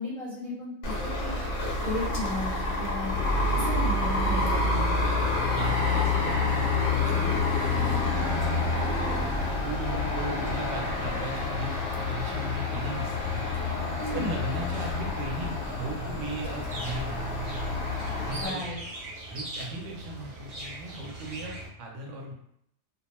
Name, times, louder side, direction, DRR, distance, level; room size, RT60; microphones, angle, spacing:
voice 1, 0.0-1.3 1.8-3.1 3.5-4.8 14.0-14.3 18.4-18.8, left 2 dB, 35° left, -8 dB, 0.7 m, -34 dB
sound 1, 0.8-18.5, left 3 dB, 70° left, 0.9 m, -28 dB
voice 2, 5.5-8.0 9.6-13.4 14.1-17.2 18.2-18.7 19.3-21.5 21.8-22.3, right 2 dB, 75° right, -1 dB, 0.9 m, -38 dB
sound 2, 16.4-21.7, right 1 dB, 50° right, 0.4 m, -40 dB
2.3 x 2.2 x 2.9 m, 0.71 s
omnidirectional pair, 1.3 m